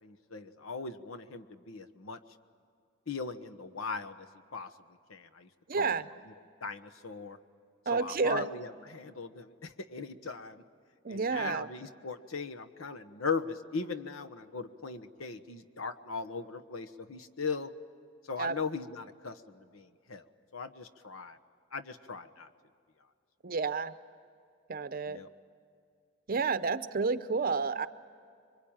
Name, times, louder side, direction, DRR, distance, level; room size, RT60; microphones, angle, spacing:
voice 1, 0.0-2.2 3.1-4.3 4.5-4.7 5.1-5.5 5.8-5.9 6.6-7.4 7.9-10.6 11.1-17.7 18.3-20.2 20.5-21.4 21.7-22.5 25.0-25.3, left 4 dB, 90° left, 8 dB, 1.2 m, -39 dB
voice 2, 5.7-6.0 7.9-8.5 11.0-11.7 18.4-18.6 23.4-23.9 24.7-25.2 26.3-27.9, right 4 dB, 45° right, 12 dB, 0.7 m, -30 dB
26.5 x 23.5 x 8.9 m, 2.3 s
head